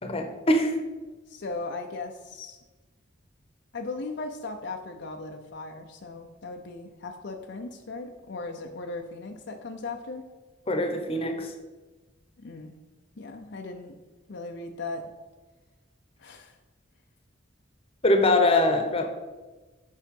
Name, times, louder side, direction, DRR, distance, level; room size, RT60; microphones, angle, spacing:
voice 1, 0.0-0.7 10.7-11.5 18.0-19.1, left 1 dB, 30° left, 6 dB, 0.9 m, -23 dB
voice 2, 1.3-2.6 3.7-10.3 12.4-12.7 13.2-14.0 14.3-15.1 16.2-16.5, left 3 dB, 60° left, 4 dB, 0.6 m, -37 dB
7.4 x 5.7 x 5.3 m, 1.2 s
head